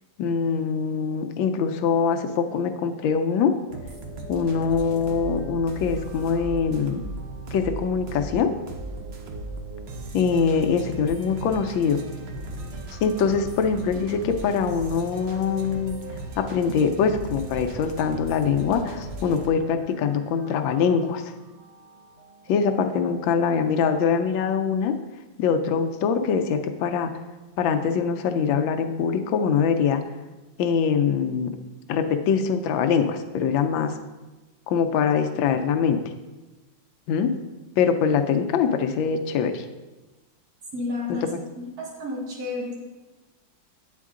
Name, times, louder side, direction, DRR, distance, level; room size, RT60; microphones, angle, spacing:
voice 1, 0.2-3.5 4.3-7.0 7.5-8.5 10.1-12.0 13.0-16.0 16.4-21.2 22.5-25.0 25.4-27.1 27.6-30.0 30.6-31.5 31.9-34.0 34.7-36.0 37.1-37.3 37.8-39.6 41.2-41.3, left 6 dB, 85° left, 7 dB, 1.3 m, -23 dB
sound 1, 3.7-23.4, right 1 dB, 90° right, 0.5 m, -37 dB
voice 2, 40.7-41.3 41.5-42.7, left 2 dB, 55° right, -2 dB, 1.7 m, -31 dB
8.3 x 4.5 x 3.6 m, 1.2 s
omnidirectional pair, 2.1 m